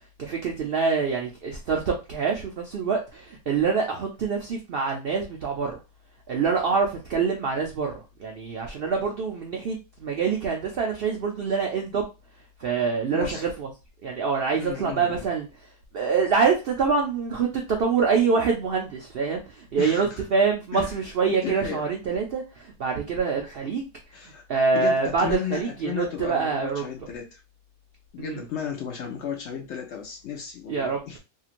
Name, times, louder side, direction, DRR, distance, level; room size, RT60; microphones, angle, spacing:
voice 1, 0.2-5.7 6.3-7.9 8.2-12.0 12.6-13.7 14.0-15.5 15.9-23.8 24.5-26.8 28.2-28.4 30.7-31.0, right 5 dB, 85° right, 2 dB, 0.5 m, -25 dB
voice 2, 13.1-13.5 14.6-15.3 19.8-20.2 20.7-20.9 21.4-21.9 24.1-24.4 24.7-27.4 28.1-31.2, left 8 dB, 70° left, 2 dB, 0.7 m, -34 dB
2.9 x 2.8 x 2.5 m, 0.28 s
omnidirectional pair, 1.6 m